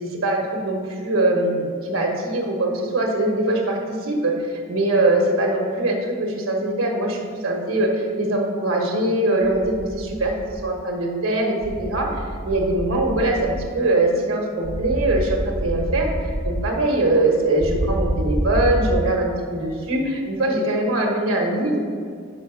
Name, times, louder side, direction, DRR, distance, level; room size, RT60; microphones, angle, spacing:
voice 1, 0.0-21.8, right 2 dB, 80° right, 1 dB, 1.3 m, -22 dB
sound 1, 9.4-10.6 11.6-13.6 14.6-16.6 17.6-18.9, right 1 dB, 25° left, 1.0 m, -27 dB
6.2 x 4.8 x 5.7 m, 2.2 s
head